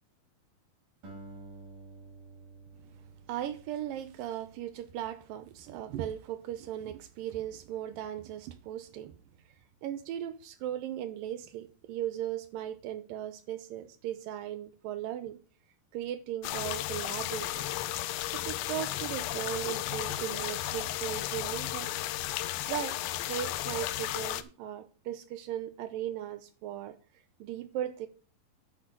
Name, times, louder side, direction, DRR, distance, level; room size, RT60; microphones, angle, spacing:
Acoustic guitar, 1.0-5.5, right 3 dB, 60° right, 6.3 m, -51 dB
voice 1, 3.3-9.1 9.8-15.4 15.9-17.6 18.3-21.9 22.7-23.0 23.3-27.0 27.4-28.1, right 11 dB, 75° right, 2.3 m, -37 dB
sound 1, 16.4-24.4, left 14 dB, 80° left, 2.4 m, -34 dB
10.5 x 9.1 x 3.8 m
omnidirectional pair, 4.4 m